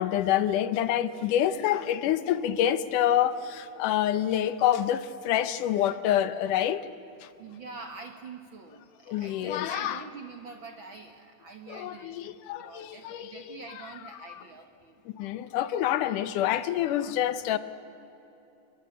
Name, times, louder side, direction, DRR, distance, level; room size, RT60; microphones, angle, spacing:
voice 1, 0.0-6.9 7.2-7.3 9.1-10.0 11.7-13.6 15.1-17.6, left 11 dB, 75° left, 14 dB, 2.3 m, -27 dB
voice 2, 7.4-15.0, right 4 dB, 50° right, 6 dB, 1.6 m, -45 dB
27.0 x 22.0 x 9.8 m, 2.9 s
omnidirectional pair, 3.9 m